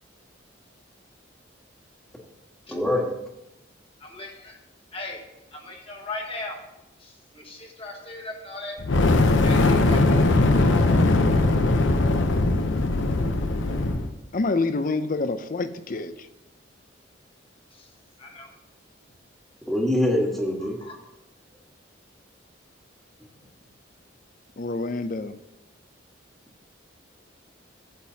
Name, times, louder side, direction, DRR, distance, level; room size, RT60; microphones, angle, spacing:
voice 1, 2.7-3.1 19.7-20.8, left 1 dB, ahead, -1 dB, 1.5 m, -24 dB
voice 2, 4.0-4.6 4.9-5.2 5.5-6.6 7.0-8.8 9.4-11.1 17.7-17.9 18.2-18.5 20.6-20.9, left 2 dB, 30° left, 1 dB, 1.4 m, -38 dB
Fire, 8.8-14.1, left 2 dB, 80° left, 0.8 m, -20 dB
voice 3, 14.3-16.3 24.6-25.4, left 3 dB, 45° left, 11 dB, 0.5 m, -27 dB
12.5 x 8.1 x 2.8 m, 0.93 s
head